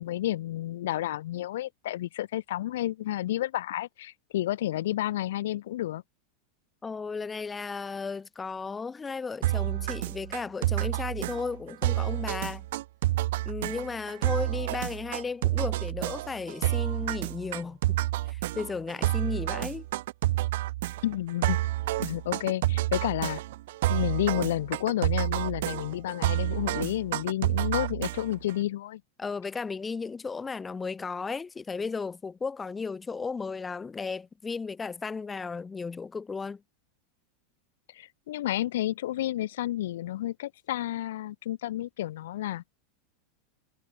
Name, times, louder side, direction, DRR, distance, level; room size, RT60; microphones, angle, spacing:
voice 1, 0.0-6.0 21.0-21.7 22.0-23.4 23.9-29.0 37.9-42.6, left 14 dB, 80° left, 1.3 m, -31 dB
voice 2, 6.8-12.7 13.5-18.0 18.3-19.9 29.2-36.6, left 4 dB, 15° left, 0.8 m, -35 dB
sound 1, 9.4-28.5, right 16 dB, 75° right, 0.4 m, -29 dB
supercardioid pair, 150°, 0 cm